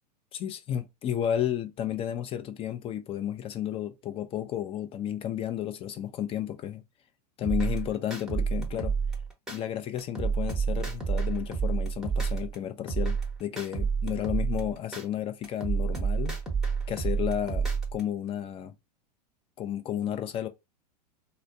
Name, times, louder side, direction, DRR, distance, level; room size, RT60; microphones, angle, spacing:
voice 1, 0.3-6.8 7.4-8.9 9.5-16.4 16.9-18.7 19.6-20.5, left 10 dB, 25° left, 0.5 m, -32 dB
sound 1, 7.4-9.6 10.0-12.6 12.9-15.0 15.4-18.0, right 5 dB, ahead, 0.9 m, -29 dB
4.0 x 2.0 x 2.5 m
figure-of-eight pair, 95°, 21 cm